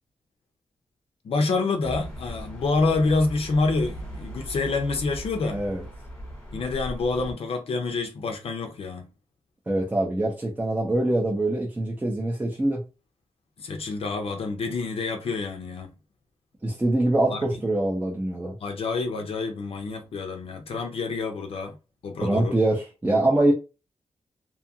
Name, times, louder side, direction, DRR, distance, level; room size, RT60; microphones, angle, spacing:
voice 1, 1.2-5.6 6.5-9.1 13.6-15.9 17.3-17.4 18.6-21.8 22.0-22.6, left 3 dB, 65° left, 0.5 m, -27 dB
sound 1, 1.8-7.3, right 1 dB, 10° left, 1.1 m, -38 dB
voice 2, 5.5-5.8 9.7-12.8 16.6-18.5 22.2-23.5, right 1 dB, 15° right, 0.6 m, -24 dB
2.7 x 2.4 x 2.7 m
wide cardioid pair, 160°, 11 cm